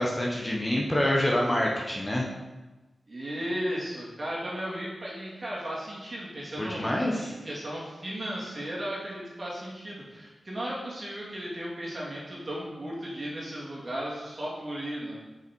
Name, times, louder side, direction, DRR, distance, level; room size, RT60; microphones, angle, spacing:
voice 1, 0.0-2.2 6.6-7.3, left 1 dB, 15° left, -3 dB, 0.9 m, -26 dB
voice 2, 3.1-15.2, equal, 35° right, -5 dB, 2.3 m, -35 dB
5.8 x 5.5 x 4.5 m, 1.1 s
wide cardioid pair, 110°, 0 cm